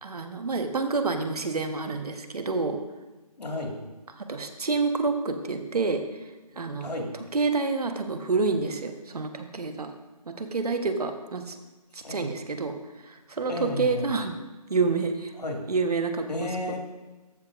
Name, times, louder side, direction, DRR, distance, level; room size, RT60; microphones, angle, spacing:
voice 1, 0.0-2.8 4.3-6.0 6.6-6.9 7.3-9.9 10.3-11.6 11.9-12.8 13.1-14.4 14.7-15.3 15.7-16.5, right 4 dB, 70° right, 6 dB, 1.2 m, -28 dB
voice 2, 3.4-3.8 6.8-7.1 12.0-12.3 13.5-14.1 15.4-15.6 16.3-16.8, left 2 dB, 85° left, 1 dB, 2.3 m, -32 dB
14.0 x 7.3 x 2.5 m, 1.2 s
figure-of-eight pair, 165°, 20 cm